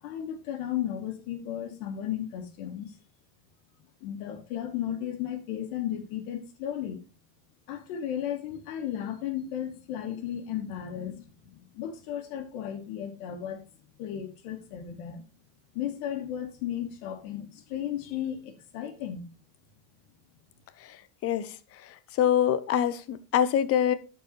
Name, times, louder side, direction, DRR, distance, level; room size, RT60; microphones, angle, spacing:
voice 1, 0.0-3.0 4.0-7.0 7.7-13.6 14.0-15.3 15.7-19.3, left 10 dB, 70° left, 1.8 m, -34 dB
voice 2, 21.2-21.5 22.2-23.9, left 10 dB, 30° left, 0.6 m, -24 dB
12.0 x 4.7 x 2.9 m
supercardioid pair, 135°, 48 cm